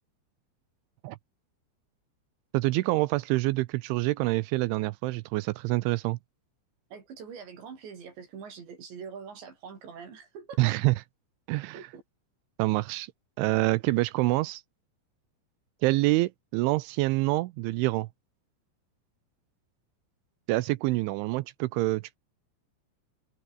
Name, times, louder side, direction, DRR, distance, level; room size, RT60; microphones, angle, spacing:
voice 1, 2.5-6.2 10.6-11.0 11.5-11.8 12.6-13.1 13.4-14.6 15.8-18.1 20.5-22.2, right 20 dB, 80° right, 2.8 m, -26 dB
voice 2, 6.9-10.7 11.7-12.0, right 6 dB, 60° right, 6.4 m, -44 dB
open air
omnidirectional pair, 5.9 m